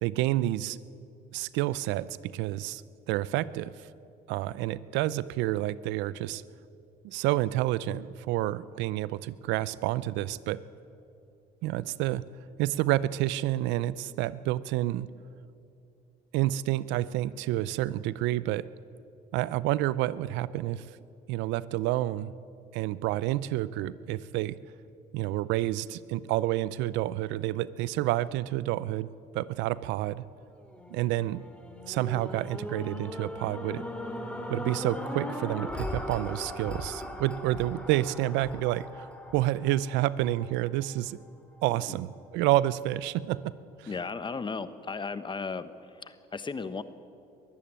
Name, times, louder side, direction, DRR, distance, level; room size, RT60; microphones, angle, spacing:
voice 1, 0.0-0.8 1.3-2.8 3.1-3.9 4.3-6.4 7.0-10.6 11.6-12.2 12.6-15.1 16.3-18.6 19.3-20.8 21.3-22.3 22.7-24.6 25.1-30.2 30.9-31.4 31.9-33.8 34.5-41.2 41.6-43.5 43.8-43.9, right 15 dB, 80° right, 18 dB, 0.6 m, -29 dB
sound 1, 30.6-40.9 41.5-41.6, left 1 dB, 5° left, 2.9 m, -39 dB
voice 2, 43.9-45.7 46.0-46.8, left 4 dB, 25° left, 13 dB, 1.2 m, -35 dB
22.5 x 14.5 x 8.9 m, 2.5 s
supercardioid pair, 85°, 19 cm